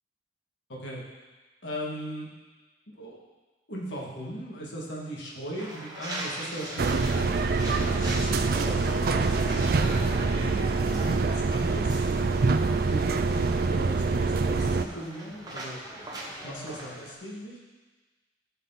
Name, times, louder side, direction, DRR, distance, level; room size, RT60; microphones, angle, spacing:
voice 1, 0.7-1.0 1.6-2.3 2.9-3.2 3.7-8.8 9.3-12.0 12.9-15.8 16.4-17.6, equal, 85° left, -4 dB, 2.3 m, -38 dB
sound 1, 5.6-17.1, right 1 dB, 20° right, 1.4 m, -40 dB
sound 2, 6.5-16.9, left 1 dB, 15° left, 1.7 m, -47 dB
sound 3, 6.8-14.9, right 4 dB, 55° right, 0.5 m, -25 dB
15.5 x 5.5 x 4.2 m, 1.3 s
head